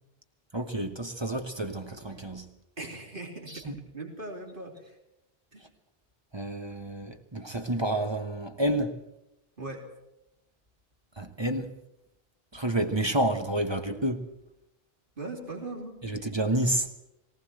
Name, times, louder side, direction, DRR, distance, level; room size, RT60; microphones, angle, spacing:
voice 1, 0.5-2.5 3.7-3.8 6.3-9.0 11.2-11.7 12.5-14.2 16.0-16.9, right 1 dB, 25° right, 1.3 m, -29 dB
voice 2, 2.8-5.0 5.5-5.6 9.6-9.8 15.2-16.3, right 2 dB, 55° right, 3.6 m, -40 dB
19.0 x 18.0 x 7.8 m
omnidirectional pair, 1.0 m